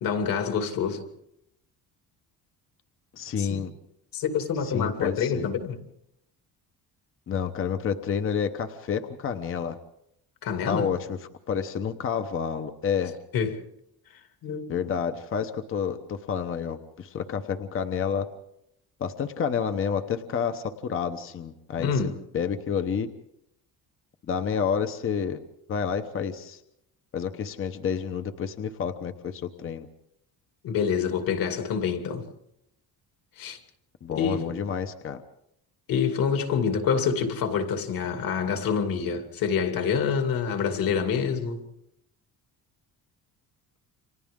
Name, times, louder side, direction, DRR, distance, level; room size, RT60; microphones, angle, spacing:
voice 1, 0.0-1.0 3.4-3.6 4.1-5.8 10.4-10.9 13.3-13.6 14.4-14.7 21.8-22.1 30.6-32.2 33.4-33.6 34.1-34.5 35.9-41.6, left 6 dB, 60° left, 2.8 m, -27 dB
voice 2, 3.1-3.7 4.6-5.5 7.3-9.8 10.7-11.2 11.5-13.2 14.7-18.3 19.0-22.0 22.3-23.1 24.3-25.4 25.7-26.6 27.1-29.9 34.0-35.2, left 7 dB, 35° left, 0.9 m, -29 dB
29.5 x 26.0 x 3.7 m
cardioid pair, 170°, 38 cm